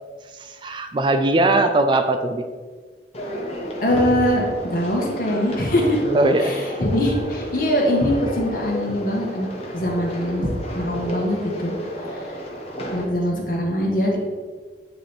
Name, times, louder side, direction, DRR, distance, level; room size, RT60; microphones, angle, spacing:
voice 1, 0.5-2.4 3.9-4.0 6.1-6.8 12.9-13.4, right 2 dB, 25° right, 7 dB, 0.3 m, -21 dB
sound 1, 3.1-13.0, equal, 35° left, 1.1 m, -31 dB
voice 2, 3.8-6.0 6.4-9.5 9.7-10.5 10.8-11.7 12.2-12.3 12.9-14.2, left 1 dB, 50° left, -2 dB, 1.6 m, -22 dB
8.9 x 3.4 x 4.4 m, 1.5 s
head